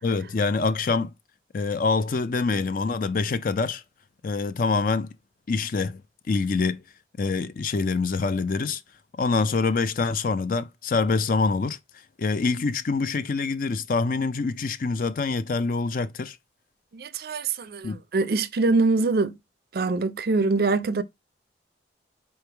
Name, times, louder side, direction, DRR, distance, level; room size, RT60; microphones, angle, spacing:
voice 1, 0.0-1.1 1.5-3.8 4.2-5.1 5.5-6.0 6.3-6.8 7.2-8.8 9.2-11.8 12.2-16.4 17.8-18.0, left 4 dB, 50° left, 0.4 m, -25 dB
voice 2, 16.9-19.4 19.7-21.0, right 3 dB, 55° right, 0.4 m, -24 dB
4.4 x 3.3 x 3.3 m
head